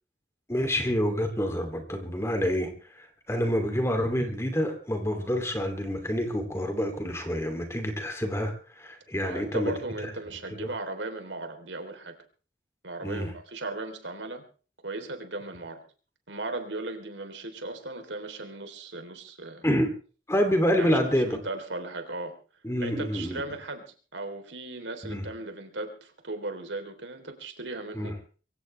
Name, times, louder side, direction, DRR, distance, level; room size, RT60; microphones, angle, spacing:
voice 1, 0.5-9.7 10.0-10.1 10.6-10.7 13.0-13.3 19.6-19.9 20.3-21.4 22.6-23.4 25.0-25.2 27.9-28.1, equal, 15° left, 5 dB, 2.9 m, -27 dB
voice 2, 9.2-12.2 12.8-14.5 14.8-15.8 16.3-19.7 20.8-21.0 21.3-22.3 22.8-28.2, right 2 dB, 90° right, 6 dB, 3.5 m, -37 dB
23.5 x 16.5 x 3.4 m, 0.38 s
head